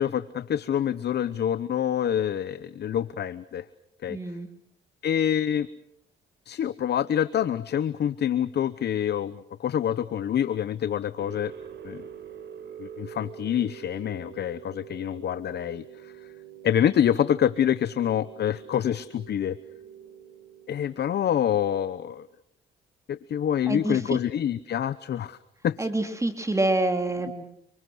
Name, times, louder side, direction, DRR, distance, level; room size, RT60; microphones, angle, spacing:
voice 1, 0.0-3.7 4.0-4.2 5.0-5.7 6.5-11.5 11.8-12.0 12.8-16.1 16.6-19.6 20.7-22.3 23.1-25.4 25.6-25.9, left 9 dB, 55° left, 15 dB, 1.0 m, -26 dB
voice 2, 4.1-4.5 23.7-24.2 25.8-27.4, right 2 dB, 15° right, 7 dB, 2.8 m, -27 dB
sound 1, 11.2-22.0, right 9 dB, 65° right, 5.2 m, -45 dB
29.5 x 25.5 x 6.3 m, 0.73 s
cardioid pair, 90°, 20 cm